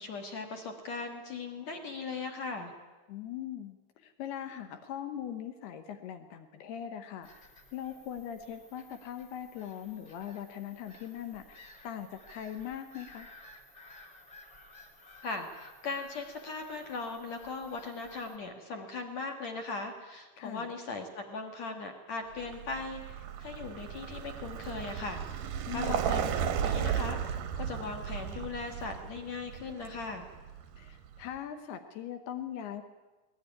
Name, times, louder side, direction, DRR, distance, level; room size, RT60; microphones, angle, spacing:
voice 1, 0.0-2.7 15.2-30.3, left 3 dB, 55° left, 4 dB, 1.9 m, -39 dB
voice 2, 3.1-7.3 7.7-13.3 20.4-20.7 25.7-26.0 30.8-32.8, left 10 dB, 75° left, 8 dB, 2.4 m, -41 dB
Bird vocalization bird call bird song / Gull seagull, 7.2-18.4, left 2 dB, 30° left, 2.0 m, -56 dB
Vehicle, 22.4-31.2, right 8 dB, 80° right, 1.9 m, -35 dB
20.5 x 20.0 x 9.8 m, 1.2 s
omnidirectional pair, 6.0 m